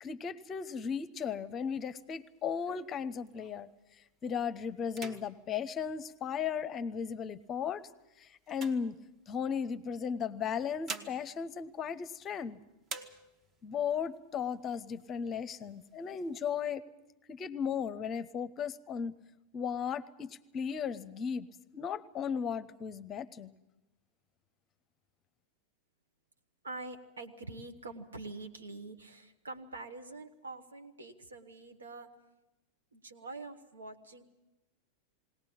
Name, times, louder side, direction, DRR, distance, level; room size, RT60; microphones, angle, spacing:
voice 1, 0.0-3.7 4.2-7.8 8.2-9.0 9.3-12.6 13.6-16.8 17.3-19.2 19.5-23.5, left 7 dB, 25° left, 15 dB, 0.7 m, -36 dB
sound 1, 1.6-3.8 4.3-4.5 4.8-6.8 7.4-9.6 10.5-12.5 12.8-13.7 14.1-14.2 14.5-15.2 15.6-16.5, right 3 dB, 30° right, 1.2 m, -49 dB
voice 2, 26.6-32.1 32.9-34.2, right 2 dB, 75° right, 7 dB, 1.5 m, -45 dB
20.0 x 18.5 x 8.7 m, 0.98 s
figure-of-eight pair, 90°, 0 cm